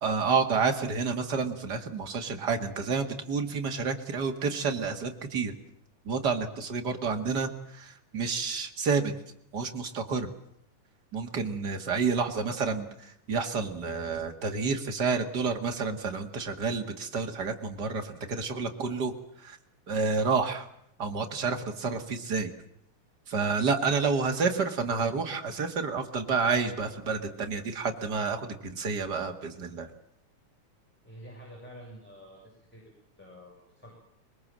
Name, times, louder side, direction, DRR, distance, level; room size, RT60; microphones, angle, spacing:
voice 1, 0.0-5.5 6.1-9.1 9.5-10.3 11.1-19.1 19.4-19.6 19.9-20.7 21.0-22.5 23.3-29.9, right 5 dB, 35° right, 5 dB, 2.3 m, -29 dB
voice 2, 31.0-32.9 33.2-34.0, equal, 5° left, -2 dB, 7.1 m, -48 dB
23.0 x 21.5 x 7.6 m, 0.75 s
omnidirectional pair, 3.7 m